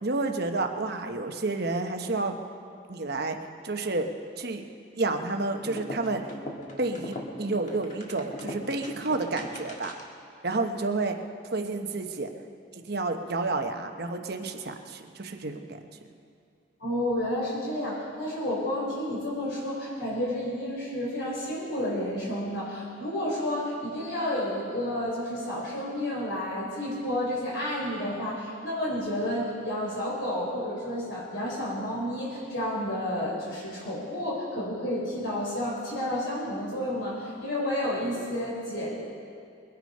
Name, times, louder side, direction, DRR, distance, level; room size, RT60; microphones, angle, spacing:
voice 1, 0.0-2.4 2.9-4.1 4.4-4.7 5.0-6.3 6.8-9.9 10.4-11.2 11.5-12.3 12.7-15.8, right 3 dB, 55° right, 5 dB, 1.0 m, -30 dB
sound 1, 5.6-10.2, left 1 dB, 40° left, 1.7 m, -40 dB
voice 2, 16.8-39.0, left 1 dB, 70° left, -5 dB, 4.1 m, -31 dB
22.0 x 9.4 x 5.5 m, 2.4 s
head